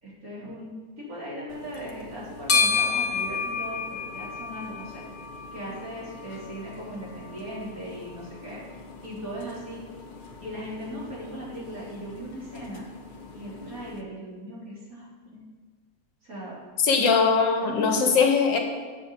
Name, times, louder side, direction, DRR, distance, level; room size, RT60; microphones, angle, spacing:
voice 1, 0.0-3.8 4.1-5.0 5.5-8.6 9.0-9.8 10.4-12.8 13.3-15.4 16.2-16.5 17.6-18.2, equal, 45° right, -8 dB, 3.8 m, -38 dB
sound 1, 1.5-14.0, left 5 dB, 45° left, 0.6 m, -33 dB
voice 2, 16.8-18.6, left 5 dB, 70° left, 3 dB, 1.7 m, -21 dB
8.3 x 6.4 x 6.8 m, 1.5 s
omnidirectional pair, 2.1 m